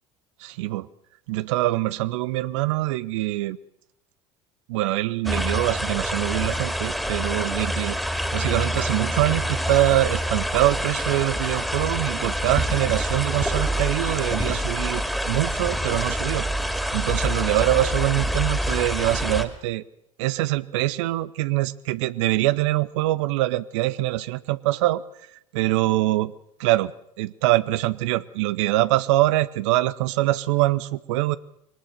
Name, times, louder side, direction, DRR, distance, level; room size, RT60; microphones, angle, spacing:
voice 1, 0.4-0.9 1.3-3.6 4.7-16.5 16.9-19.8 20.2-25.0 25.5-26.3 26.6-26.9 27.2-31.4, right 17 dB, 65° right, 0.7 m, -24 dB
sound 1, 5.3-19.5, equal, ahead, 2.6 m, -26 dB
22.5 x 19.0 x 6.6 m
figure-of-eight pair, 65°, 17 cm